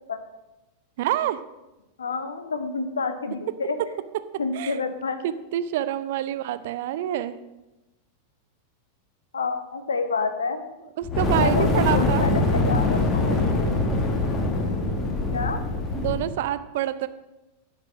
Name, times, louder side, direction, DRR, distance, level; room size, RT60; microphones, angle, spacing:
voice 1, 1.0-1.4 4.5-4.8 5.2-7.4 11.0-12.2 15.9-17.1, right 12 dB, 55° right, 14 dB, 0.5 m, -27 dB
voice 2, 2.0-3.8 4.4-5.2 9.3-10.6 11.3-13.7 15.3-15.6, left 4 dB, 70° left, 9 dB, 0.9 m, -28 dB
Fire, 11.0-16.3, left 2 dB, 25° left, 1.5 m, -23 dB
11.5 x 5.5 x 6.1 m, 0.99 s
figure-of-eight pair, 90°, 0 cm